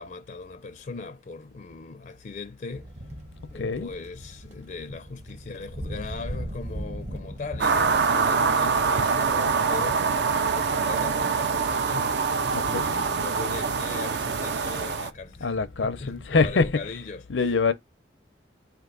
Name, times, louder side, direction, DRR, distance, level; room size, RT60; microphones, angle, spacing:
voice 1, 0.0-2.9 3.5-10.0 10.5-12.2 12.5-15.5 15.8-17.7, left 3 dB, 45° left, 0.4 m, -39 dB
sound 1, 2.7-12.5 13.4-16.5, equal, 40° right, 1.0 m, -41 dB
voice 2, 3.6-3.9 12.5-13.0 15.4-16.9 17.3-17.7, left 4 dB, 85° left, 0.6 m, -25 dB
sound 2, 7.6-15.1, right 5 dB, 65° right, 0.5 m, -24 dB
4.5 x 2.5 x 3.8 m
head